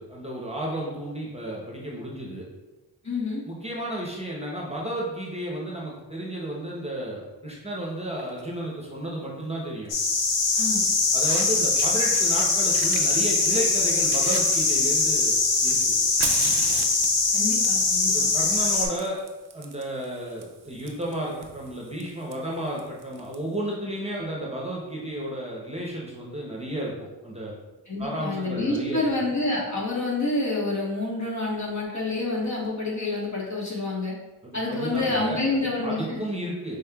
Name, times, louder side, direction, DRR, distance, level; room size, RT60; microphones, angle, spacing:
voice 1, 0.0-2.4 3.5-9.9 11.1-16.0 18.1-19.2 19.5-27.5 28.0-29.0 34.4-36.8, right 1 dB, 15° right, -3 dB, 0.9 m, -32 dB
voice 2, 3.0-3.4 10.6-10.9 17.3-18.3 27.9-34.1 34.5-36.2, left 2 dB, 40° left, -5 dB, 1.3 m, -28 dB
Fire, 8.2-8.4 9.8-9.9 10.9-11.0 11.2-12.4 12.7-15.1 15.7-23.3, right 6 dB, 70° right, 0.6 m, -37 dB
sound 1, 9.9-18.9, left 3 dB, 80° left, 0.8 m, -22 dB
5.3 x 3.6 x 2.3 m, 1.1 s
wide cardioid pair, 70°, 42 cm